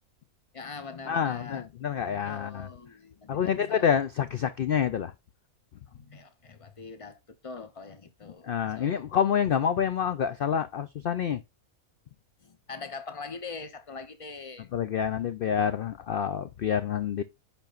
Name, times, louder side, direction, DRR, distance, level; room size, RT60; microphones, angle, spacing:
voice 1, 0.5-3.9 5.9-8.9 12.4-14.7, left 4 dB, 30° left, 0.7 m, -43 dB
voice 2, 1.1-2.7 3.3-5.1 8.4-11.4 14.7-17.2, left 8 dB, 85° left, 0.4 m, -27 dB
10.5 x 4.4 x 2.5 m
omnidirectional pair, 1.5 m